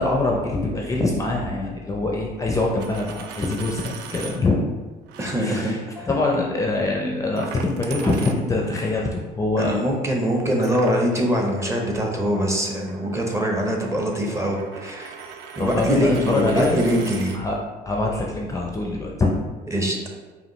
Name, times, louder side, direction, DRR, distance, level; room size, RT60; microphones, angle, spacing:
voice 1, 0.0-4.6 5.4-5.8 6.1-9.9 15.6-16.9 17.3-17.6 17.9-19.3, left 2 dB, 20° left, -1 dB, 0.4 m, -24 dB
Coin (dropping), 2.6-4.4 5.1-5.3 7.4-8.8 10.6-17.4, right 6 dB, 85° right, 0.4 m, -40 dB
voice 2, 5.2-6.1 9.6-15.1 15.6-17.4 19.7-20.0, equal, 15° right, 1 dB, 0.7 m, -23 dB
5.0 x 2.6 x 3.0 m, 1.3 s
cardioid pair, 110°, 17 cm